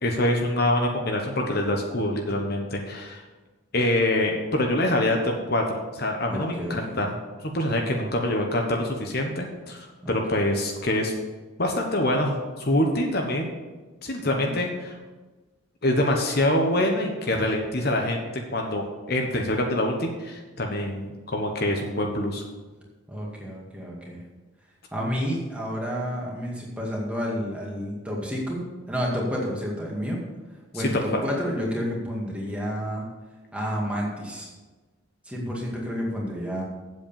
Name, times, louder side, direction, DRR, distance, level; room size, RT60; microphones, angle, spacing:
voice 1, 0.0-3.2 3.7-7.2 7.4-11.1 11.6-13.5 14.0-15.0 15.8-22.4 30.7-30.8 31.1-31.2, left 1 dB, 45° left, 2 dB, 1.2 m, -25 dB
voice 2, 6.3-7.0 7.7-8.1 10.0-10.2 14.2-14.5 23.1-24.2 24.9-28.6 28.9-30.2 30.7-33.1 33.5-34.5 35.3-36.6, equal, 5° right, -3 dB, 2.1 m, -30 dB
8.3 x 7.6 x 7.0 m, 1.2 s
head